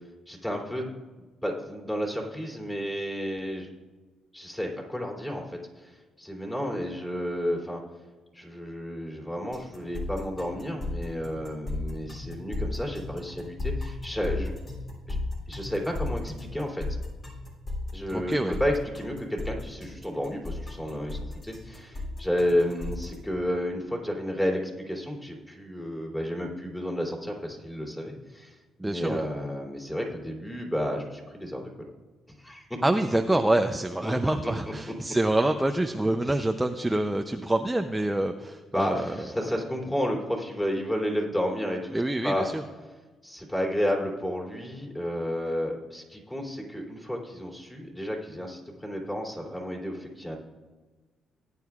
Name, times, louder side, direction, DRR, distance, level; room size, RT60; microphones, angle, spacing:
voice 1, 0.3-0.8 1.4-3.7 4.3-7.8 8.3-14.5 15.1-15.2 15.5-16.8 17.9-31.7 32.3-32.8 34.0-34.1 34.4-34.5 36.2-36.4 38.7-42.4 43.2-50.4, equal, 10° left, 0 dB, 2.9 m, -31 dB
sound 1, 9.5-23.1, left 2 dB, 40° left, 3.1 m, -35 dB
voice 2, 18.1-18.6 28.8-29.2 32.8-39.2 41.9-42.6, right 1 dB, 10° right, 6 dB, 0.6 m, -26 dB
18.5 x 9.8 x 2.4 m, 1.3 s
cardioid pair, 90°, 0 cm